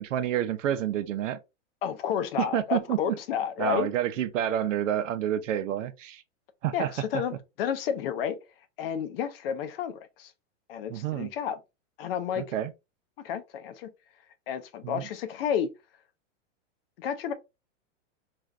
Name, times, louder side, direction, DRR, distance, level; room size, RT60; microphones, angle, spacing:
voice 1, 0.0-1.4 2.4-3.0 3.6-6.2 6.6-7.2 10.9-11.3 12.4-12.7 14.8-15.0, right 11 dB, 80° right, 0.7 m, -29 dB
voice 2, 1.8-3.9 6.7-7.3 7.6-8.4 8.8-10.3 10.7-11.6 12.0-12.5 13.2-13.9 14.5-15.7 17.0-17.3, left 8 dB, 50° left, 0.5 m, -31 dB
3.2 x 2.5 x 2.4 m
hypercardioid pair, 145°, 37 cm